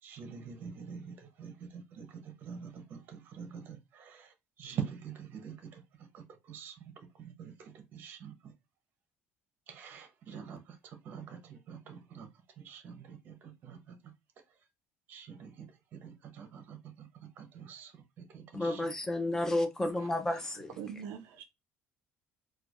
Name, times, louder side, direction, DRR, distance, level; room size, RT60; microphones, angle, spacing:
voice 1, 0.0-8.5 9.7-12.3 12.6-14.1 15.1-19.0, right 7 dB, 45° right, 0.7 m, -46 dB
voice 2, 18.5-20.7, left 1 dB, 10° left, 0.5 m, -31 dB
voice 3, 20.4-21.4, right 8 dB, 70° right, 0.4 m, -44 dB
4.4 x 2.3 x 2.4 m
cardioid pair, 160°, 5 cm